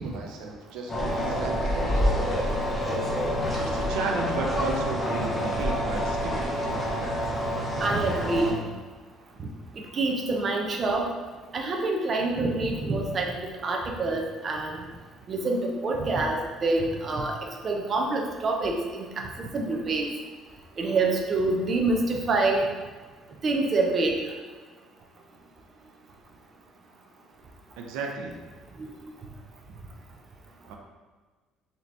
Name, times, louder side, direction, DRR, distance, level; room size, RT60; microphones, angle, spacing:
voice 1, 0.0-2.2 3.6-6.5 27.8-28.4 30.7-30.8, right 3 dB, 85° right, 1 dB, 0.4 m, -34 dB
sound 1, 0.9-8.5, equal, 15° left, 0.7 m, -27 dB
voice 2, 7.8-8.6 9.4-9.5 9.9-11.1 11.5-13.3 13.6-14.8 15.3-17.4 17.6-20.1 20.8-22.6 23.4-24.1 28.8-28.9, right 3 dB, 35° right, 1 dB, 0.5 m, -26 dB
3.9 x 2.9 x 3.3 m, 1.4 s
cardioid pair, 130°, 0 cm